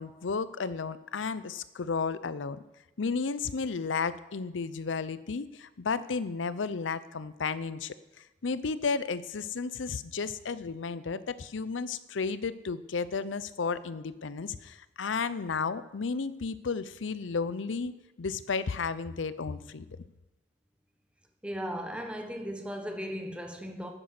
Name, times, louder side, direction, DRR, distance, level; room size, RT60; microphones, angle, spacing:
voice 1, 0.0-2.6 3.0-17.9 18.2-19.9, left 5 dB, 90° left, 15 dB, 0.6 m, -33 dB
voice 2, 21.4-23.9, equal, 5° right, 4 dB, 1.1 m, -36 dB
9.9 x 9.5 x 6.5 m, 1.0 s
head